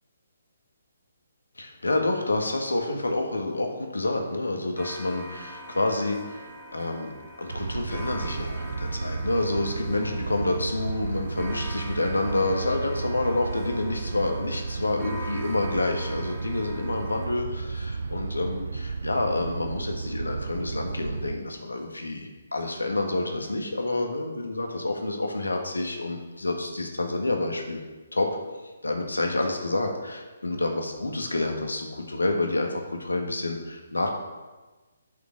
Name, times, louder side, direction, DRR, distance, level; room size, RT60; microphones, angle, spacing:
voice 1, 1.6-7.1 7.4-27.8 28.1-28.4 28.8-34.1, left 2 dB, 80° left, 2 dB, 1.6 m, -28 dB
sound 1, 4.8-17.3, equal, 5° right, 1.7 m, -43 dB
sound 2, 7.5-21.4, right 4 dB, 65° right, 0.6 m, -33 dB
8.2 x 5.3 x 7.4 m, 1.2 s
figure-of-eight pair, 140°, 0 cm